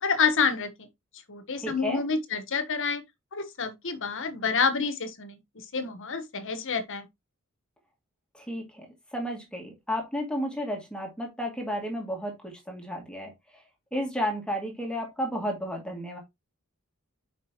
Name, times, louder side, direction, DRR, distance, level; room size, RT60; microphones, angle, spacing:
voice 1, 0.0-0.9 1.3-3.0 3.3-5.4 5.7-7.1, left 5 dB, 60° left, 1.2 m, -28 dB
voice 2, 1.6-2.0 8.3-8.9 9.1-13.3 13.9-16.2, equal, 5° left, 2.3 m, -32 dB
7.3 x 5.2 x 2.9 m
head